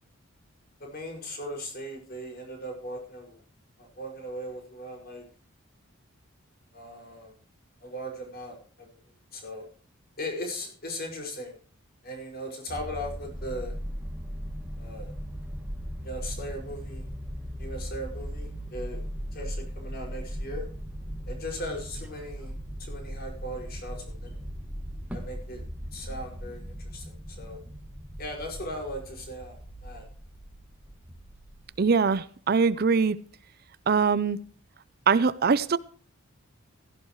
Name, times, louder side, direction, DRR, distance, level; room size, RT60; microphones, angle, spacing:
voice 1, 0.8-3.4 3.8-5.2 6.7-7.3 7.8-8.9 9.3-9.7 10.2-11.6 12.0-13.7 14.8-15.1 16.0-17.1 17.6-19.0 19.3-20.7 21.3-22.5 22.8-24.4 25.1-25.6 25.9-27.6 28.2-30.1, equal, 45° left, 5.8 m, -38 dB
sound 1, 12.7-31.7, equal, 5° right, 1.9 m, -38 dB
voice 2, 31.8-33.2 33.9-34.4 35.1-35.8, right 5 dB, 45° right, 0.5 m, -22 dB
16.0 x 14.0 x 3.1 m
head